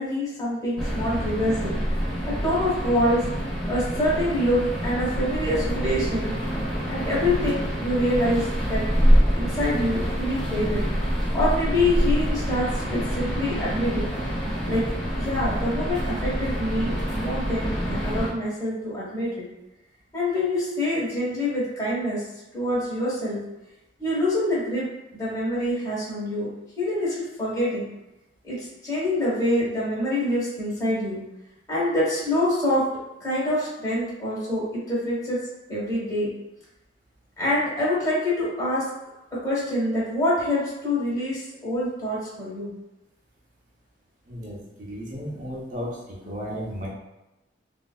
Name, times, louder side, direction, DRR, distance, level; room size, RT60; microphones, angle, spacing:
voice 1, 0.0-1.8 2.3-3.2 3.7-6.3 6.9-8.8 9.3-10.8 11.3-14.1 14.6-14.8 15.1-19.5 20.1-22.2 22.5-23.4 24.0-24.9 25.1-26.5 26.8-27.9 28.4-31.2 31.7-32.8 33.2-35.4 35.7-36.3 37.4-38.8 39.3-42.7, left 1 dB, 20° left, -9 dB, 1.3 m, -26 dB
sound 1, 0.8-18.3, equal, 5° left, 1.1 m, -26 dB
voice 2, 44.3-46.9, equal, 45° right, -5 dB, 0.8 m, -34 dB
3.3 x 2.6 x 2.3 m, 0.99 s
head